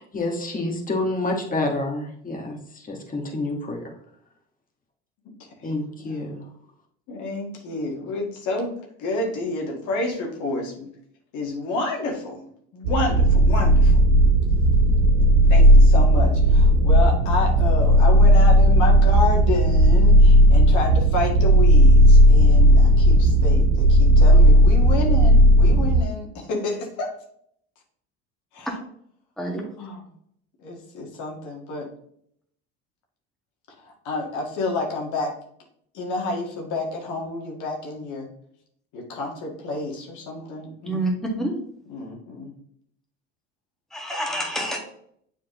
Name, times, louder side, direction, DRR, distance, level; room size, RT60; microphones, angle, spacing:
voice 1, 0.0-3.9 5.6-6.4, left 2 dB, 25° left, 1.7 m, -28 dB
voice 2, 7.1-8.7 9.0-10.9 11.3-12.4 12.7-14.1 15.5-27.1 28.5-28.7 29.8-30.0 30.6-31.9 34.1-35.3 35.9-38.3 38.9-40.9 41.9-42.5, left 2 dB, 65° left, 1.8 m, -29 dB
sound 1, 12.8-26.0, equal, 90° right, 0.7 m, -15 dB
voice 3, 40.8-41.5 43.9-44.8, right 1 dB, ahead, 1.8 m, -27 dB
7.2 x 4.5 x 3.1 m
supercardioid pair, 75°, 32 cm